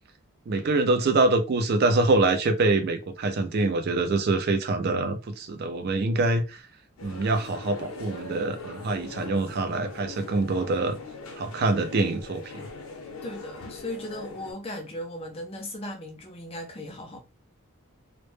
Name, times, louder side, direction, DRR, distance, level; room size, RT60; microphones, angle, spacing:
voice 1, 0.5-6.6 7.0-11.0 11.4-12.4, right 2 dB, 45° right, 0.3 m, -25 dB
sound 1, 7.0-14.5, left 3 dB, 75° left, 0.6 m, -41 dB
voice 2, 13.2-17.2, left 1 dB, 25° left, 0.4 m, -37 dB
2.0 x 2.0 x 3.1 m
head